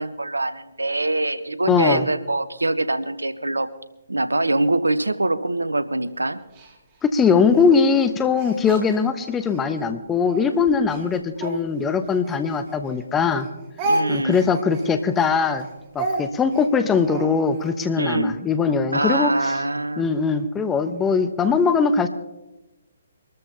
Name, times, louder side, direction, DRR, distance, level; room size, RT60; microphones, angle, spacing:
voice 1, 0.0-3.7 4.1-6.4 13.8-14.4 18.0-18.4 18.9-20.1, right 2 dB, 85° right, 14 dB, 0.9 m, -24 dB
voice 2, 1.7-2.0 7.1-13.5 14.1-15.7 15.9-19.5 20.0-22.1, left 5 dB, 15° left, 10 dB, 0.9 m, -21 dB
Speech, 6.5-9.7 10.2-13.0 13.3-17.7, right 2 dB, 30° right, 2.4 m, -32 dB
24.5 x 13.5 x 2.8 m, 0.99 s
figure-of-eight pair, 135°, 0 cm